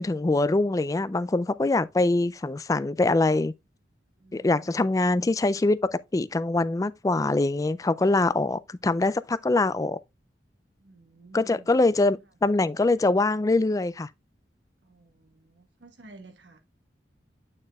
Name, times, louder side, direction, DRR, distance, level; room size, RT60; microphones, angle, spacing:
voice 1, 0.0-3.5 4.3-5.8 6.1-10.0 11.3-14.1, left 2 dB, 20° left, 0.3 m, -23 dB
voice 2, 4.2-4.8 10.8-11.7 14.8-16.6, right 2 dB, 90° right, 1.3 m, -51 dB
8.8 x 6.5 x 2.3 m
head